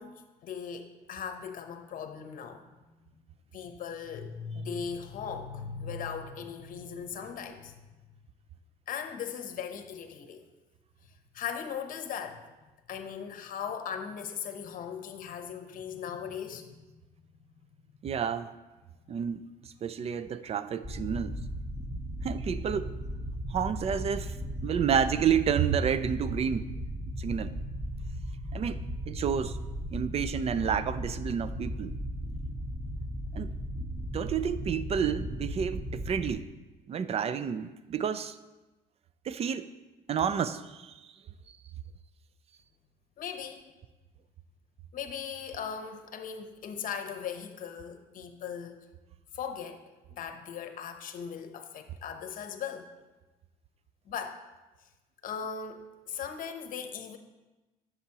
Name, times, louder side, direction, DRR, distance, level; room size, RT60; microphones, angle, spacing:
voice 1, 0.0-3.2 3.5-8.1 8.9-10.5 11.3-12.4 12.9-16.7 43.2-43.7 44.9-48.8 49.3-49.8 50.1-52.9 54.1-54.4 55.2-57.2, left 7 dB, 55° left, 7 dB, 0.8 m, -38 dB
voice 2, 18.0-18.5 19.1-21.4 22.2-22.9 23.5-24.3 24.6-26.7 27.1-27.5 28.5-28.8 29.1-29.6 29.9-32.0 33.3-33.5 34.1-36.5 36.9-38.4 39.2-39.7 40.1-41.0, right 7 dB, 35° right, 13 dB, 0.4 m, -30 dB
sound 1, 20.8-36.3, equal, 20° right, 1.8 m, -36 dB
10.0 x 6.9 x 2.9 m, 1.1 s
cardioid pair, 110°, 17 cm